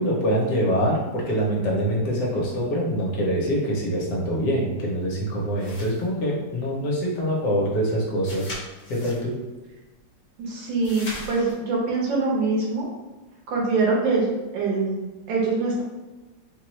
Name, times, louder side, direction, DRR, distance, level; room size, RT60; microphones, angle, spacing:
voice 1, 0.0-8.5 8.9-9.3, equal, 65° left, -3 dB, 1.3 m, -24 dB
sound 1, 5.6-6.1 8.2-9.3 10.8-11.5, left 1 dB, 50° left, 0.5 m, -38 dB
voice 2, 10.4-12.9 13.5-15.8, right 3 dB, 80° right, -3 dB, 1.6 m, -24 dB
3.9 x 2.3 x 3.0 m, 1.1 s
omnidirectional pair, 2.0 m